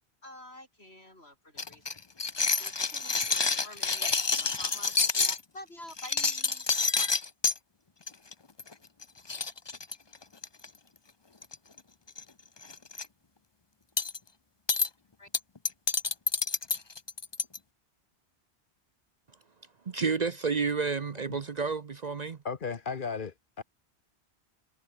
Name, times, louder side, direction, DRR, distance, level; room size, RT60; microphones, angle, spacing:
voice 1, 0.2-2.0 2.4-7.1 15.2-15.3, left 1 dB, 70° left, 8.2 m, -49 dB
sound 1, 1.6-5.4 5.9-7.6 8.1-8.3 8.6-8.7 9.0-9.1 9.3-10.7 11.4-11.8 12.1-12.2 12.6-13.0 14.0-14.2 14.7-14.9 15.3-17.6, left 4 dB, 25° left, 0.8 m, -28 dB
voice 2, 19.9-22.4, right 5 dB, 45° right, 0.8 m, -30 dB
voice 3, 22.4-23.6, left 5 dB, 50° left, 1.2 m, -35 dB
omnidirectional pair, 1.1 m